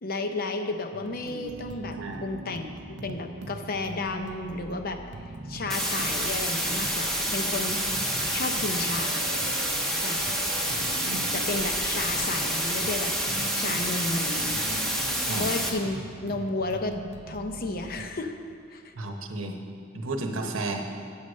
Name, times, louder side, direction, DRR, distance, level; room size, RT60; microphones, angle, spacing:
voice 1, 0.0-5.0 5.5-7.8 8.3-9.2 9.9-10.3 11.3-14.6 15.4-17.0 17.3-18.3 18.7-18.9, left 2 dB, 45° left, 6 dB, 0.6 m, -32 dB
sound 1, 0.9-18.0, right 2 dB, 55° right, 0.5 m, -41 dB
sound 2, 5.7-15.7, equal, ahead, 0.7 m, -28 dB
voice 2, 19.0-19.6 19.9-20.8, right 2 dB, 85° right, 4 dB, 1.0 m, -32 dB
8.7 x 6.5 x 6.3 m, 2.4 s
head